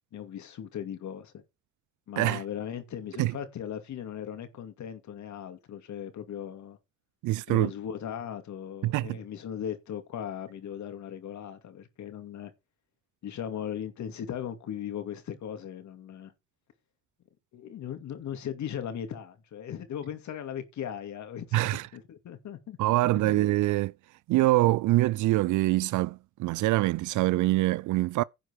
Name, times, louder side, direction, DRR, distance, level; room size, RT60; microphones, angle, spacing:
voice 1, 0.1-1.4 2.1-6.8 7.5-12.5 13.2-16.3 17.5-21.6 21.9-22.8 23.0-23.4, left 9 dB, 70° left, 2.5 m, -38 dB
voice 2, 7.2-7.7 8.8-9.2 21.5-21.9 22.8-23.9 24.3-28.2, right 17 dB, 80° right, 0.5 m, -24 dB
10.5 x 4.8 x 6.5 m
cardioid pair, 90°, 30 cm